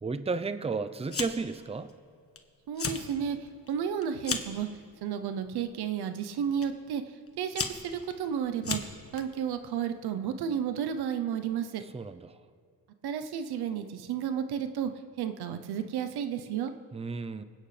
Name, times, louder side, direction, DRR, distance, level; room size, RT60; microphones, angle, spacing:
voice 1, 0.0-1.9 11.9-12.3 16.9-17.4, right 4 dB, 15° right, 10 dB, 0.6 m, -33 dB
Fire, 1.1-1.6 1.9-2.4 2.7-3.1 3.5-4.6 5.4-5.7 6.6-6.7 7.3-9.2, left 5 dB, 35° left, 1.2 m, -35 dB
voice 2, 2.7-3.4 3.7-4.7 5.0-7.0 7.4-8.8 9.1-11.8 13.0-14.9 15.2-16.7, right 8 dB, 80° right, 9 dB, 0.8 m, -32 dB
24.0 x 9.2 x 3.3 m, 2.1 s
cardioid pair, 65°, 38 cm